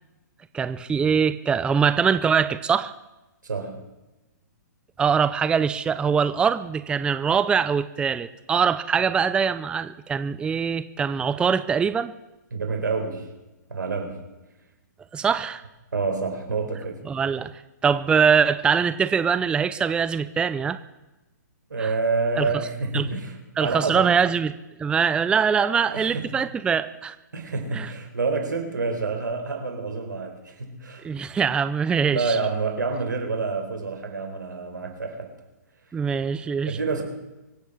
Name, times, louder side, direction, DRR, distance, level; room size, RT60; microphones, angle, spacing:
voice 1, 0.5-2.9 5.0-12.1 15.1-15.6 17.1-17.5 17.8-20.8 21.8-21.9 22.4-22.5 22.9-23.1 23.6-24.5 24.8-27.2 27.7-27.9 31.0-32.4 35.9-36.8, right 6 dB, 10° right, 12 dB, 0.5 m, -23 dB
voice 2, 3.4-3.8 12.5-13.3 13.7-14.2 15.9-17.0 21.7-24.1 25.7-26.3 27.3-31.1 32.1-35.3 36.7-37.0, right 4 dB, 85° right, 4 dB, 4.3 m, -28 dB
24.0 x 8.3 x 6.2 m, 1.0 s
hypercardioid pair, 135°, 10 cm